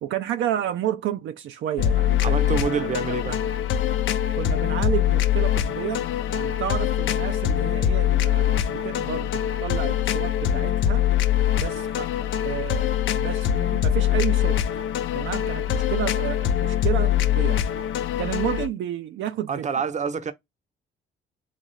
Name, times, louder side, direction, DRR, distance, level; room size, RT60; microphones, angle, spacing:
voice 1, 0.0-3.4 4.3-11.1 11.5-14.6 15.1-17.6 18.2-19.7, right 11 dB, 75° right, 0.5 m, -31 dB
sound 1, 1.8-18.7, left 11 dB, 75° left, 0.5 m, -23 dB
voice 2, 2.2-3.4 19.5-20.3, right 6 dB, 35° right, 0.7 m, -27 dB
4.0 x 2.3 x 3.2 m
cardioid pair, 90°, 20 cm